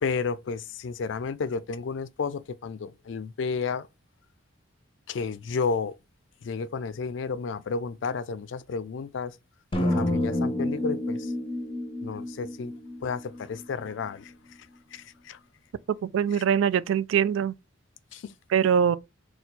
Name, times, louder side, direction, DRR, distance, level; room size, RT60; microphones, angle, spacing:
voice 1, 0.0-3.9 5.1-5.9 6.4-9.4 9.8-11.3 12.0-12.7 13.0-14.6 14.9-15.4 16.3-16.4 18.1-18.3, left 5 dB, 70° left, 0.4 m, -32 dB
sound 1, 9.7-13.9, left 1 dB, 25° left, 0.6 m, -29 dB
voice 2, 16.0-17.5 18.5-19.0, right 8 dB, 90° right, 0.3 m, -23 dB
4.3 x 2.3 x 3.9 m
head